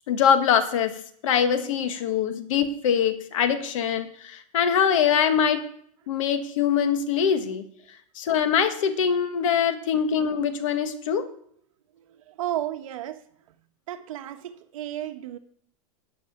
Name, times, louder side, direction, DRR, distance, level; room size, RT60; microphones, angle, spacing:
voice 1, 0.1-5.6 6.1-7.6 8.1-11.3, left 7 dB, 60° left, 9 dB, 1.6 m, -23 dB
voice 2, 12.3-13.2 13.9-15.4, right 12 dB, 65° right, 7 dB, 1.4 m, -33 dB
9.9 x 7.6 x 9.2 m, 0.65 s
supercardioid pair, 175°, 18 cm